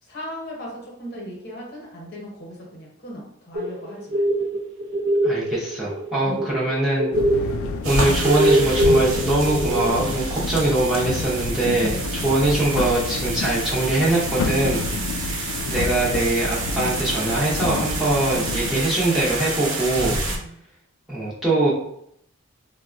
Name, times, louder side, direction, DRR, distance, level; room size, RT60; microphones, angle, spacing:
voice 1, 0.0-4.3 6.2-6.5 11.7-12.3 15.0-15.4 20.2-20.6, left 1 dB, 50° left, -2 dB, 0.9 m, -37 dB
sound 1, 3.6-6.7 7.0-10.0, right 1 dB, 60° right, 0.5 m, -21 dB
voice 2, 5.2-7.1 7.8-14.8 15.2-20.2 21.1-21.7, right 2 dB, ahead, -8 dB, 0.6 m, -22 dB
sound 2, 7.1-18.8, left 3 dB, 80° left, 0.3 m, -29 dB
sound 3, 7.8-20.4, right 2 dB, 85° right, 0.8 m, -29 dB
3.8 x 2.1 x 2.4 m, 0.73 s
head